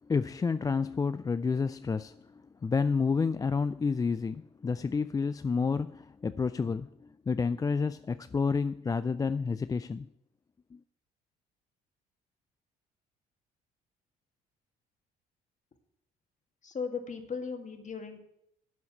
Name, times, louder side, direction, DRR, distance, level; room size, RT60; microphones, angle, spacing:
voice 1, 0.1-10.1 10.7-10.8, left 5 dB, 20° left, 0.3 m, -30 dB
voice 2, 16.6-18.2, left 5 dB, 40° left, 2.0 m, -37 dB
8.1 x 7.1 x 8.3 m
hypercardioid pair, 60°, 20 cm